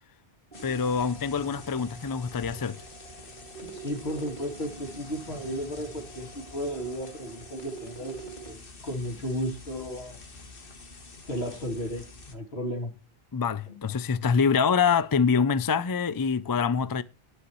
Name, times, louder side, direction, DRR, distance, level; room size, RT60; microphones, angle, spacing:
sound 1, 0.5-12.4, left 3 dB, 60° left, 1.7 m, -47 dB
sound 2, 0.5-8.5, right 4 dB, 50° right, 2.6 m, -46 dB
voice 1, 0.6-2.8 13.3-17.0, left 6 dB, 30° left, 0.4 m, -25 dB
voice 2, 3.6-8.6 8.8-10.2 11.3-12.9 13.7-13.8, equal, 80° left, 3.2 m, -34 dB
18.5 x 6.4 x 3.1 m
omnidirectional pair, 1.0 m